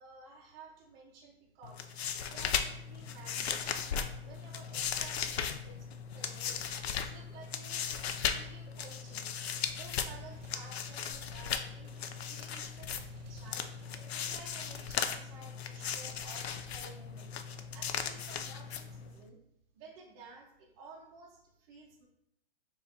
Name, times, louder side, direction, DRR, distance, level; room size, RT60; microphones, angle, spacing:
voice 1, 0.0-2.0 2.3-4.0 4.2-6.7 6.9-7.9 8.3-9.3 9.7-13.7 14.0-17.3 17.7-19.4 19.7-22.1, right 3 dB, 15° right, -2 dB, 0.5 m, -54 dB
sound 1, 1.6-19.2, left 7 dB, 80° left, 0.5 m, -37 dB
sound 2, 8.7-14.3, right 3 dB, 45° right, 0.7 m, -57 dB
4.1 x 3.5 x 2.8 m, 0.76 s
hypercardioid pair, 155°, 31 cm